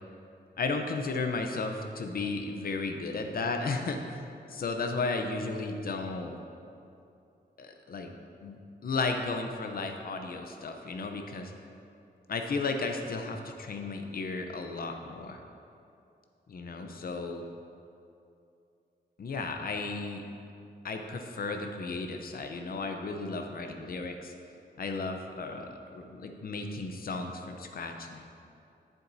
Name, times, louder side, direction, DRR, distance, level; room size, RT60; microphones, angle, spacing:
voice 1, 0.6-6.4 7.6-8.1 8.4-11.5 12.3-15.4 16.5-17.4 19.2-20.2 20.8-24.3 24.8-28.2, left 3 dB, 55° left, 4 dB, 0.6 m, -34 dB
9.9 x 7.2 x 2.7 m, 2.6 s
wide cardioid pair, 130°, 18 cm